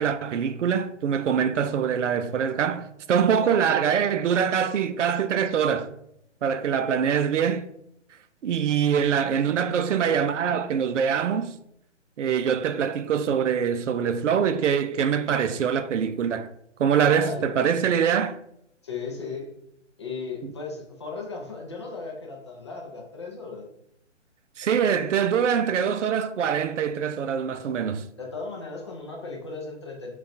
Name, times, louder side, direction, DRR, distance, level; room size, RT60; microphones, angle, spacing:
voice 1, 0.0-5.9 6.4-7.6 8.4-11.6 12.2-16.5 16.8-18.4 24.6-28.1, right 7 dB, 75° right, 0.5 m, -24 dB
voice 2, 17.2-17.9 18.8-19.5 20.0-23.7 28.2-30.1, left 4 dB, 25° left, 0.4 m, -36 dB
5.7 x 2.3 x 2.6 m
hypercardioid pair, 140°, 36 cm